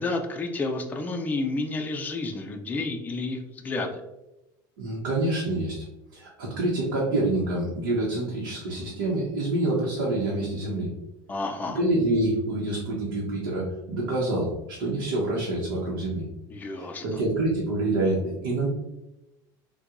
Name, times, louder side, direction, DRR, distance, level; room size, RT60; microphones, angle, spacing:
voice 1, 0.0-4.0 11.3-11.8 16.5-17.2, left 3 dB, 15° left, 3 dB, 0.4 m, -30 dB
voice 2, 4.8-5.8 6.1-10.9 11.7-16.2 16.8-18.7, right 2 dB, 90° right, -5 dB, 0.9 m, -27 dB
4.4 x 2.2 x 2.5 m, 0.93 s
supercardioid pair, 120°, 11 cm